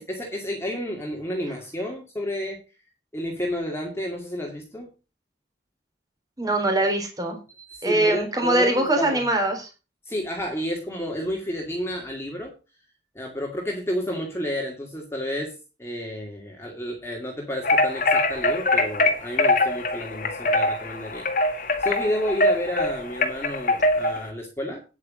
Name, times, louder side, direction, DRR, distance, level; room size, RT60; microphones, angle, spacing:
voice 1, 0.0-2.6 3.1-4.9 7.6-9.2 10.1-12.5 13.1-15.5 15.8-24.8, equal, 15° left, 0 dB, 2.3 m, -31 dB
voice 2, 6.4-7.4 7.8-9.7, right 1 dB, 20° right, 3 dB, 3.5 m, -22 dB
sound 1, 17.6-24.3, left 2 dB, 45° left, 1.8 m, -23 dB
9.7 x 8.2 x 5.1 m, 0.31 s
head